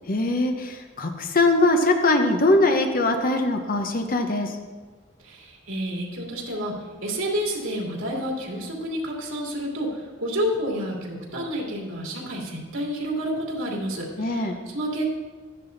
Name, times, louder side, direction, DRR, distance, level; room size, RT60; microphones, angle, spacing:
voice 1, 0.1-4.5 14.2-14.5, left 2 dB, 45° left, 5 dB, 0.8 m, -21 dB
voice 2, 5.2-6.7 7.0-15.0, equal, 90° right, -2 dB, 2.7 m, -29 dB
12.5 x 10.0 x 4.0 m, 1.4 s
head